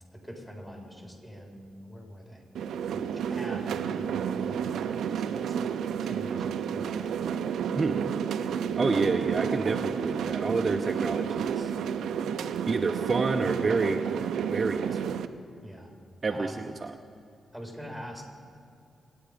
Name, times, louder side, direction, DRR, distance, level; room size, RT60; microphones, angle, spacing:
voice 1, 0.1-2.4 2.8-5.7 6.0-7.1 15.6-15.9 16.3-16.6 17.5-18.2, equal, 10° left, 0 dB, 4.2 m, -44 dB
sound 1, 2.5-15.3, right 8 dB, 90° right, 0.6 m, -31 dB
voice 2, 8.8-11.7 12.7-14.0 14.4-15.2 16.2-16.5, right 3 dB, 40° right, 5 dB, 0.7 m, -28 dB
25.5 x 9.6 x 5.2 m, 2.4 s
cardioid pair, 75°, 0 cm